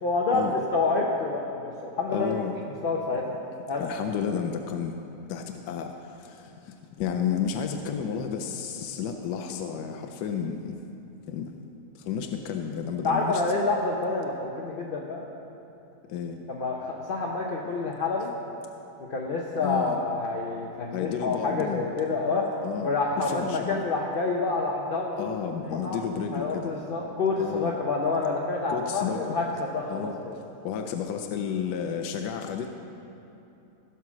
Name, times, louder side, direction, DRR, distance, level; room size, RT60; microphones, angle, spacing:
voice 1, 0.0-2.3 2.8-3.2 3.7-3.9 13.0-15.2 16.5-18.3 19.1-25.3 25.7-26.0 26.3-30.4, left 3 dB, 50° left, -2 dB, 0.7 m, -28 dB
voice 2, 2.1-2.5 3.8-4.9 5.3-10.8 11.3-11.5 12.0-13.4 16.1-16.4 19.6-20.0 20.9-21.9 22.6-23.8 25.2-26.7 27.4-27.7 28.7-29.3 29.9-30.2 30.6-32.7, left 7 dB, 85° left, 5 dB, 1.2 m, -32 dB
16.0 x 5.8 x 6.0 m, 2.9 s
omnidirectional pair, 1.8 m